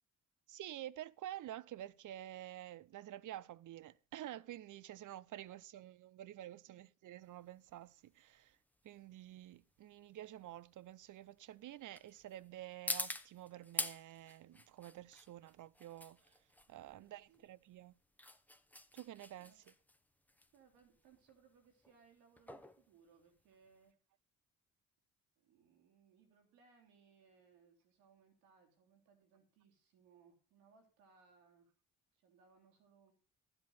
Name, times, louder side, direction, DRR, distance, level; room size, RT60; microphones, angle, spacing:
voice 1, 0.5-8.6 8.8-16.4 16.7-17.9 18.9-19.7, right 13 dB, 55° right, 0.7 m, -50 dB
sound 1, 7.2-23.9, left 1 dB, 5° left, 1.1 m, -47 dB
voice 2, 16.8-17.4 19.4-19.6 20.5-24.0 25.4-31.7 32.1-33.1, right 6 dB, 85° right, 3.1 m, -68 dB
12.0 x 7.9 x 5.7 m
hypercardioid pair, 55°, 38 cm